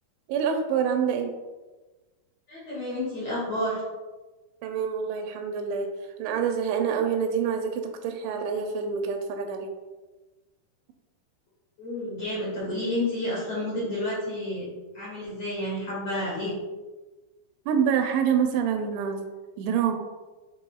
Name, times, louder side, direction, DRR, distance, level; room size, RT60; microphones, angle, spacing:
voice 1, 0.3-1.3 4.6-5.9 6.2-9.7 17.7-19.2 19.6-19.9, right 7 dB, 85° right, 4 dB, 2.8 m, -26 dB
voice 2, 2.5-3.8 11.8-14.7 14.9-16.5, left 1 dB, 55° left, -8 dB, 1.9 m, -30 dB
10.5 x 4.0 x 2.4 m, 1.2 s
omnidirectional pair, 5.3 m